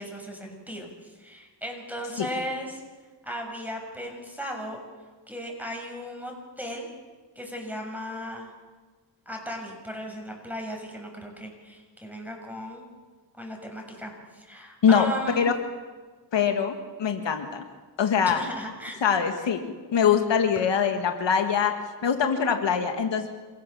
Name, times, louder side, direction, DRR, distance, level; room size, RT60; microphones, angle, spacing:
voice 1, 0.0-2.8 3.2-4.8 5.3-6.9 7.4-8.5 9.3-12.8 13.4-15.5 18.3-19.0, equal, 5° right, 1 dB, 7.2 m, -36 dB
voice 2, 16.3-17.6 18.0-18.4 19.0-19.6 19.9-21.7 22.0-23.3, left 7 dB, 80° left, 6 dB, 2.0 m, -23 dB
28.0 x 16.0 x 7.2 m, 1.4 s
cardioid pair, 65°, 43 cm